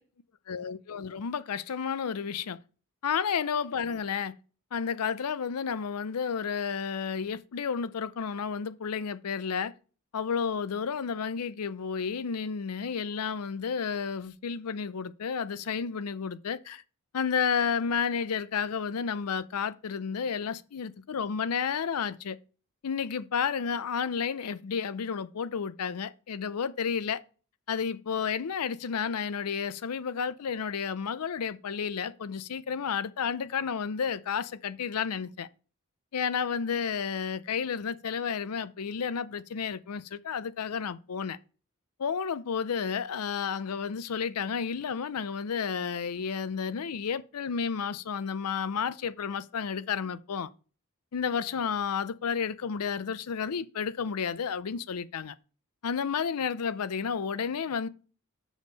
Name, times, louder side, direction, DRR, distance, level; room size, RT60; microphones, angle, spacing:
voice 1, 0.5-2.6 3.0-4.3 4.7-9.7 10.1-16.8 17.1-22.4 22.8-27.2 27.7-35.5 36.1-41.4 42.0-50.5 51.1-55.3 55.8-57.9, left 6 dB, 80° left, 0.5 m, -31 dB
6.3 x 5.1 x 5.3 m
head